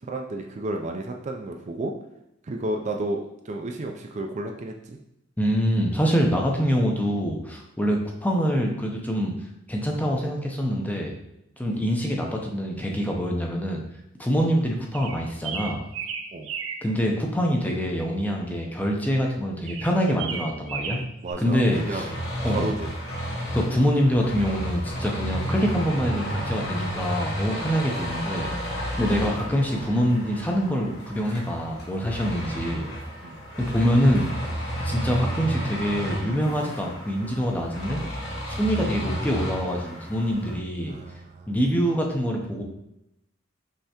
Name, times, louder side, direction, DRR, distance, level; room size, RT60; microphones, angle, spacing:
voice 1, 0.0-1.9 2.4-5.0 11.7-11.9 16.3-16.5 21.2-22.2 22.4-22.9 33.2-33.4 40.9-41.6, right 2 dB, 35° right, 3 dB, 0.4 m, -32 dB
voice 2, 5.4-9.3 9.7-11.1 11.6-13.8 14.2-15.8 16.8-21.0 21.4-22.1 22.4-22.7 23.5-28.5 29.0-32.9 33.6-34.3 34.8-38.0 38.5-40.9 41.5-42.6, equal, 10° left, 0 dB, 0.6 m, -25 dB
sound 1, 14.9-16.9 19.7-21.3, right 6 dB, 90° right, 0.5 m, -34 dB
sound 2, 21.7-40.6, equal, 60° left, 1.1 m, -32 dB
5.5 x 3.3 x 2.9 m, 0.85 s
head